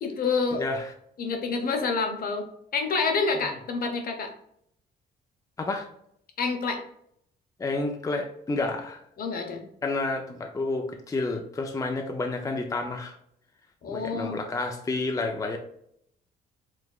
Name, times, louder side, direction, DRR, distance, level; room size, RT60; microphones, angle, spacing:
voice 1, 0.0-0.6 1.2-2.4 2.7-4.3 6.4-6.8 9.2-9.6 13.8-14.4, left 4 dB, 55° left, 4 dB, 0.9 m, -28 dB
voice 2, 0.5-0.9 5.6-5.9 7.6-9.0 9.8-13.1 13.9-15.6, left 3 dB, 20° left, 3 dB, 0.5 m, -30 dB
4.8 x 3.4 x 2.3 m, 0.70 s
cardioid pair, 110°, 18 cm